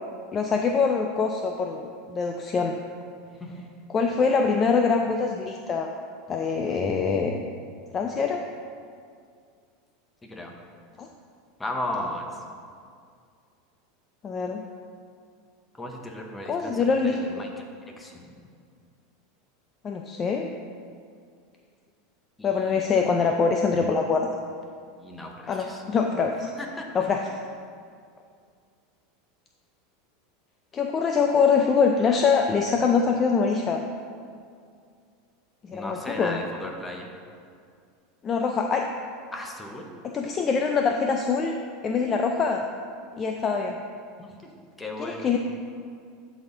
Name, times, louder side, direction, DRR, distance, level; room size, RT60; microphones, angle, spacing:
voice 1, 0.3-2.8 3.9-5.9 6.3-7.4 7.9-8.4 11.0-11.1 14.2-14.6 16.5-17.2 19.8-20.5 22.4-24.3 25.5-26.5 26.9-27.2 30.7-33.8 35.7-36.4 38.2-38.9 40.0-41.6 41.8-42.7 43.2-43.8 45.0-45.4, left 5 dB, 25° left, 3 dB, 0.4 m, -24 dB
voice 2, 10.2-10.5 11.6-12.3 15.8-16.8 17.0-17.5 18.0-18.3 22.4-23.0 25.0-25.8 26.6-26.9 35.7-37.1 39.3-40.0 44.2-44.5 44.8-45.3, left 1 dB, 10° left, 1 dB, 0.9 m, -35 dB
11.0 x 4.1 x 3.9 m, 2.2 s
supercardioid pair, 130°, 0 cm